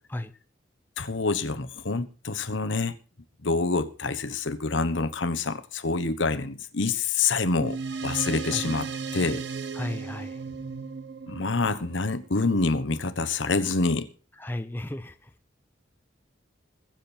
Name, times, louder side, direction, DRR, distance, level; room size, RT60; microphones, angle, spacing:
voice 1, 1.0-3.0 3.4-7.8 8.0-9.4 11.3-14.1, left 3 dB, 75° left, 1.2 m, -27 dB
sound 1, 7.6-12.4, right 5 dB, 65° right, 1.2 m, -35 dB
voice 2, 9.7-10.4 14.4-15.3, left 1 dB, 10° left, 0.7 m, -34 dB
22.0 x 7.6 x 4.4 m
head